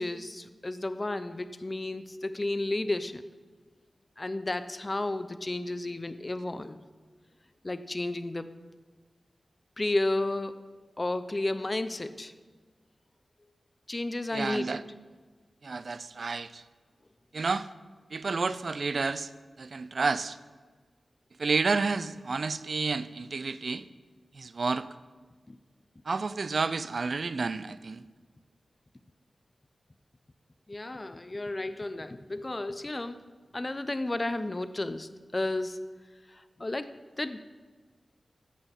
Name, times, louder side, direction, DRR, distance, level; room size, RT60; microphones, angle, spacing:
voice 1, 0.0-3.2 4.2-6.8 7.6-8.5 9.8-10.6 11.0-12.3 13.9-14.8 25.5-25.6 30.7-33.2 33.5-35.8 36.3-37.4, left 2 dB, 30° left, 12 dB, 0.6 m, -32 dB
voice 2, 14.3-14.8 15.6-16.6 17.3-17.7 18.1-19.3 19.6-20.4 21.4-23.9 24.3-24.9 26.1-28.0, right 4 dB, 60° right, 15 dB, 0.5 m, -30 dB
14.5 x 6.2 x 8.2 m, 1.4 s
wide cardioid pair, 100°, 0 cm